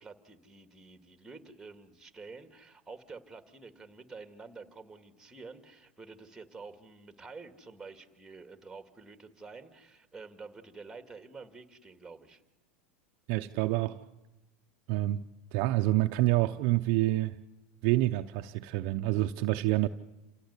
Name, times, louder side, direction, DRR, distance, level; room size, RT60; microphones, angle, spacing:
voice 1, 0.0-12.4, right 4 dB, 5° right, 2.1 m, -49 dB
voice 2, 13.3-14.0 14.9-15.2 15.5-17.4 17.8-19.9, right 17 dB, 55° right, 0.8 m, -27 dB
28.5 x 17.0 x 8.3 m
supercardioid pair, 125°, 6 cm